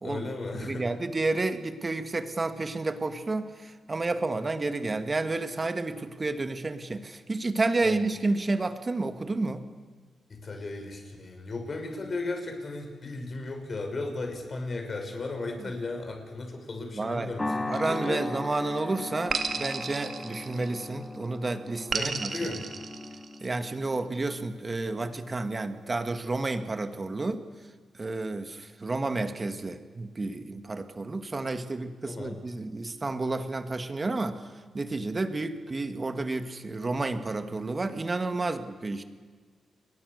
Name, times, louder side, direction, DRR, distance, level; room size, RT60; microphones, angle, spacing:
voice 1, 0.0-0.9 7.8-7.9 10.3-18.3 21.9-22.7 32.0-32.4, left 3 dB, 45° left, 4 dB, 6.5 m, -35 dB
voice 2, 0.5-9.6 15.4-15.7 16.9-17.3 17.7-22.3 23.4-27.4 27.9-34.4 34.7-39.0, right 3 dB, 35° right, 8 dB, 2.1 m, -31 dB
sound 1, 17.4-25.9, left 2 dB, 25° left, 1.2 m, -38 dB
sound 2, 17.7-18.6 19.3-21.0 21.9-23.6, right 5 dB, 55° right, 2.4 m, -34 dB
30.0 x 22.0 x 6.8 m, 1.5 s
cardioid pair, 65°, 0 cm